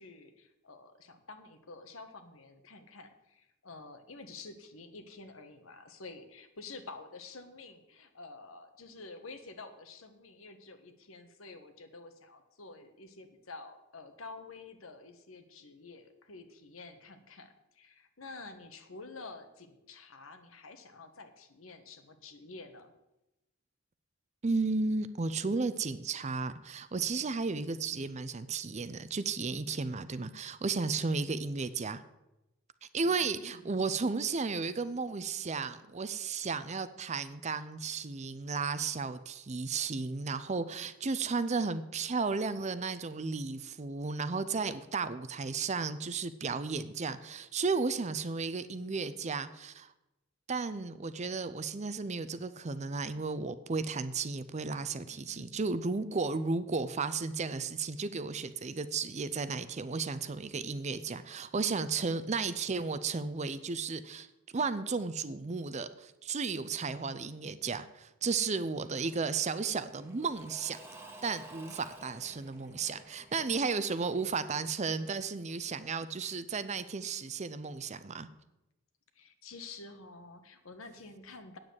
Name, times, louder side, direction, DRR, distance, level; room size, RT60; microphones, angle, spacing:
voice 1, 0.0-22.9 31.0-31.1 33.0-33.6 55.1-55.6 79.1-81.6, left 3 dB, 75° left, 8 dB, 1.4 m, -49 dB
voice 2, 24.4-32.0 32.9-49.9 50.5-64.3 64.5-70.8 71.2-78.3, right 4 dB, 35° right, 13 dB, 0.6 m, -34 dB
Engine / Mechanisms / Drill, 68.8-75.5, right 1 dB, 10° right, 1.4 m, -54 dB
9.0 x 7.5 x 8.0 m, 0.94 s
head